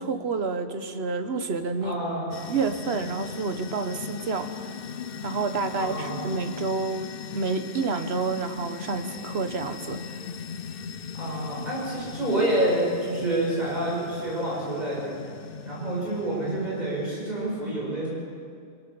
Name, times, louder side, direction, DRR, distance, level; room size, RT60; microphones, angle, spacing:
voice 1, 0.0-2.0 2.5-4.7 5.2-10.0, right 4 dB, 65° right, 8 dB, 1.5 m, -29 dB
voice 2, 1.8-2.3 5.8-6.2 11.1-15.1 15.7-18.1, right 1 dB, 40° right, -6 dB, 7.7 m, -28 dB
sound 1, 2.3-17.1, left 6 dB, 55° left, 0.9 m, -38 dB
23.5 x 17.0 x 7.0 m, 2.3 s
omnidirectional pair, 1.2 m